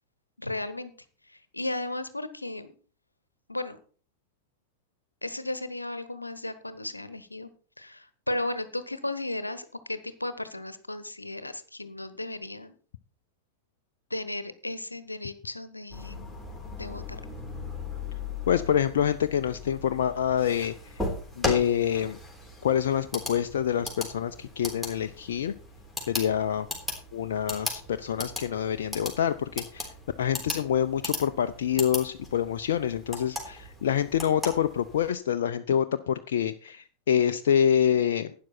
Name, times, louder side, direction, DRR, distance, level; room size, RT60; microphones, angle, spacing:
voice 1, 0.4-0.9 1.3-2.7 3.5-3.8 5.2-7.5 7.8-12.7 14.1-16.4 16.7-17.2, left 2 dB, 85° left, 13 dB, 1.0 m, -35 dB
sound 1, 15.9-35.1, left 2 dB, 5° right, 3.6 m, -38 dB
voice 2, 18.5-20.7 21.4-22.2 22.6-25.5 26.1-26.7 27.1-29.9 30.2-38.3, left 9 dB, 60° left, 9 dB, 0.6 m, -26 dB
12.0 x 9.7 x 4.3 m, 0.39 s
figure-of-eight pair, 90°, 0 cm